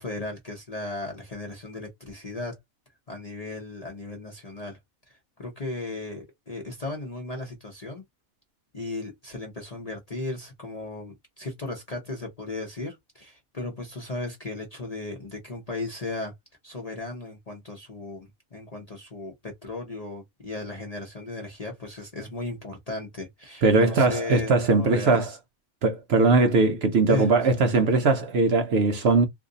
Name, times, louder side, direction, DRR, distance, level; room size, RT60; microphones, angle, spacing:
voice 1, 0.0-2.6 3.1-4.8 5.1-8.0 8.7-16.3 16.6-25.2 27.1-27.3, left 2 dB, 35° left, 0.7 m, -36 dB
voice 2, 23.6-25.3 25.8-29.3, right 3 dB, 60° right, 0.7 m, -20 dB
2.6 x 2.5 x 3.8 m
omnidirectional pair, 1.5 m